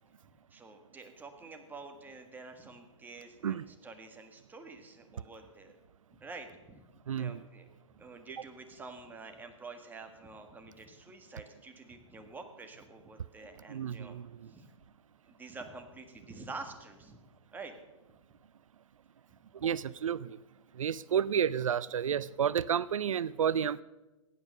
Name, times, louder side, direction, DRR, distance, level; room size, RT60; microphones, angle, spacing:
voice 1, 0.2-5.7 6.1-6.8 7.1-7.7 8.0-14.2 14.5-14.7 15.3-17.2 17.5-17.7 19.6-19.7 22.1-22.2, right 3 dB, 10° right, 5 dB, 1.7 m, -48 dB
voice 2, 7.1-7.4 13.7-14.2 19.6-20.3 20.8-23.8, right 8 dB, 85° right, 20 dB, 0.4 m, -30 dB
15.5 x 9.3 x 6.5 m, 1.1 s
hypercardioid pair, 125°, 16 cm